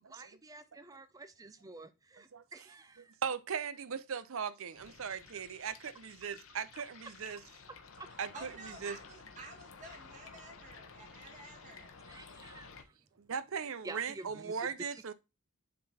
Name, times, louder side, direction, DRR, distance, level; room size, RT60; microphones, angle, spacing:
voice 1, 0.1-3.2 5.3-5.4 8.0-8.1 12.1-13.0 13.8-15.0, right 2 dB, 15° right, 0.5 m, -50 dB
voice 2, 3.2-7.4 8.2-9.0 13.2-15.1, right 6 dB, 60° right, 0.6 m, -38 dB
sound 1, 4.7-12.8, left 5 dB, 60° left, 0.9 m, -54 dB
voice 3, 8.3-12.0, right 2 dB, 35° right, 2.1 m, -51 dB
7.7 x 3.8 x 4.2 m
head